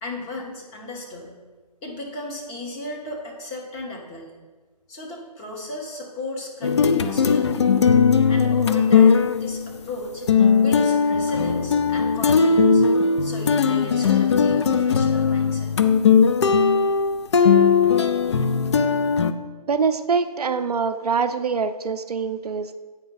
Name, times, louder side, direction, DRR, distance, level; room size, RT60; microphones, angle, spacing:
voice 1, 0.0-1.3 1.8-4.3 4.9-7.7 8.3-10.2 10.6-12.8 13.2-15.7, left 2 dB, 15° left, -1 dB, 0.9 m, -35 dB
sound 1, 6.6-9.7 10.3-19.3, left 6 dB, 45° left, 0.4 m, -18 dB
voice 2, 19.7-22.8, right 5 dB, 70° right, 9 dB, 0.5 m, -24 dB
8.5 x 5.2 x 3.9 m, 1.3 s
figure-of-eight pair, 155°, 20 cm